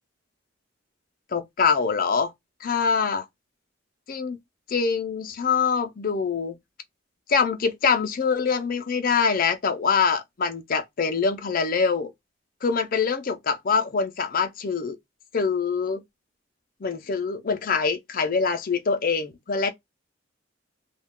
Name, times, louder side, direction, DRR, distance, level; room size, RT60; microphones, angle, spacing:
voice 1, 1.3-2.3 2.6-3.3 4.1-4.4 4.7-6.6 7.3-12.1 12.6-15.0 15.3-16.0 16.8-19.7, left 5 dB, 45° left, 0.5 m, -24 dB
2.3 x 2.2 x 3.5 m
head